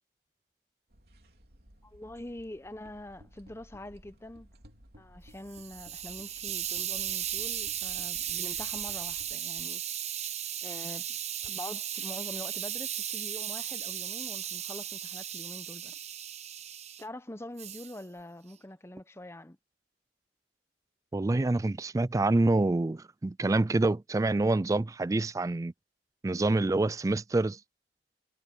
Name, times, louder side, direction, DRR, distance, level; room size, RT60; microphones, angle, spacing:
sound 1, 0.9-9.4, equal, 60° right, 3.8 m, -56 dB
voice 1, 1.8-4.5 5.0-9.8 10.6-11.2 11.4-15.9 17.0-19.6, left 1 dB, 15° left, 0.9 m, -44 dB
Hiss, 5.3-17.0 17.6-18.0, right 10 dB, 40° right, 1.0 m, -36 dB
voice 2, 21.1-25.7 26.2-27.6, right 2 dB, 20° right, 0.3 m, -27 dB
head